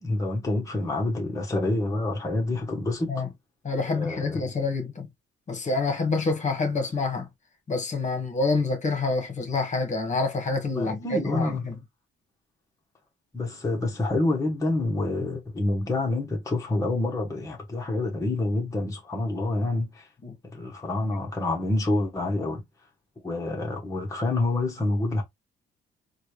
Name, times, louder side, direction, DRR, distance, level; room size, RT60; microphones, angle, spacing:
voice 1, 0.0-3.2 3.9-4.4 10.7-11.7 13.3-20.1 20.5-22.6 23.2-25.2, left 2 dB, 15° left, 1.1 m, -27 dB
voice 2, 3.6-5.1 5.5-7.3 7.7-11.7 20.2-20.3, left 3 dB, 35° left, 1.3 m, -27 dB
4.1 x 2.3 x 3.2 m
cardioid pair, 90°, 20 cm